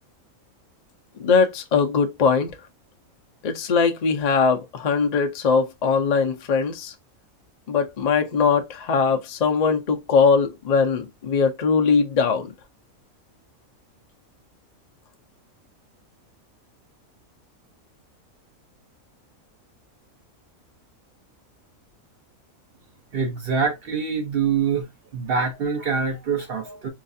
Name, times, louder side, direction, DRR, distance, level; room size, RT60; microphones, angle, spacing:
voice 1, 1.2-2.6 3.4-6.9 7.7-12.5, left 5 dB, 50° left, 0.5 m, -21 dB
voice 2, 23.1-24.9 25.1-26.9, right 6 dB, 55° right, 0.8 m, -25 dB
3.9 x 2.4 x 2.6 m
omnidirectional pair, 1.4 m